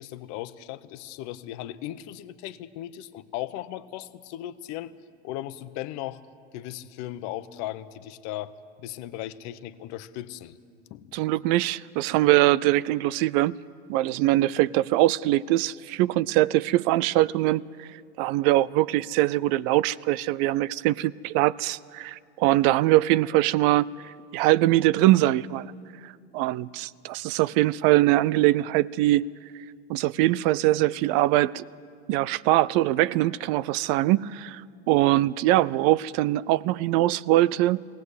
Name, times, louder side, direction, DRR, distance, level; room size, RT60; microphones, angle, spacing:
voice 1, 0.0-4.9 5.2-6.2 6.5-10.6 10.9-11.1, left 13 dB, 55° left, 1.1 m, -37 dB
voice 2, 11.1-13.6 13.9-17.9 18.2-25.7 26.0-29.3 29.9-31.6 32.1-34.6 34.9-37.9, right 16 dB, 55° right, 0.6 m, -22 dB
20.5 x 17.5 x 8.2 m
hypercardioid pair, 85°, 33 cm